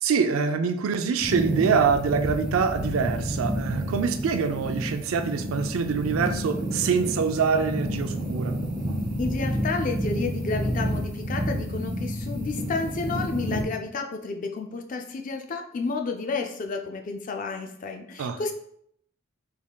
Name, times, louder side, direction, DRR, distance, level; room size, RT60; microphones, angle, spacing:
voice 1, 0.0-8.6 18.2-18.4, right 5 dB, 85° right, 8 dB, 0.4 m, -25 dB
sound 1, 1.2-13.6, equal, 25° right, 0.7 m, -30 dB
voice 2, 9.2-18.5, left 4 dB, 40° left, 4 dB, 0.4 m, -31 dB
3.6 x 3.6 x 2.3 m, 0.70 s
head